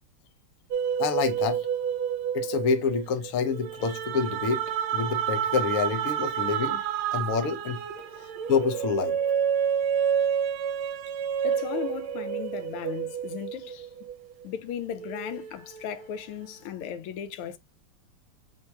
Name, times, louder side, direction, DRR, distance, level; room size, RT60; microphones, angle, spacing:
sound 1, 0.7-14.4 14.9-16.5, right 8 dB, 80° right, 1.4 m, -29 dB
voice 1, 1.0-1.7 2.3-4.6 4.9-6.8 7.1-7.8 8.2-9.2, left 5 dB, 60° left, 0.8 m, -27 dB
voice 2, 11.4-13.9 14.4-17.6, left 9 dB, 85° left, 1.5 m, -36 dB
4.3 x 2.1 x 4.6 m
omnidirectional pair, 2.3 m